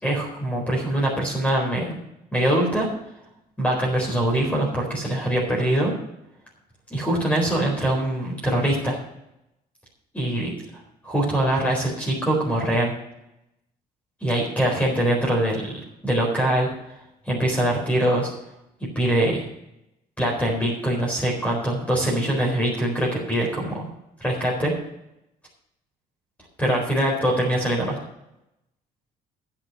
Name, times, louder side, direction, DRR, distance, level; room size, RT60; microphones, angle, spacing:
voice 1, 0.0-2.0 2.3-2.9 3.6-5.9 6.9-9.0 10.1-10.5 11.0-12.9 14.2-16.7 17.2-18.3 18.8-19.5 20.2-23.9 24.2-24.7 26.6-28.0, right 1 dB, 10° left, -2 dB, 4.2 m, -23 dB
10.5 x 8.7 x 6.3 m, 0.86 s
cardioid pair, 110°, 17 cm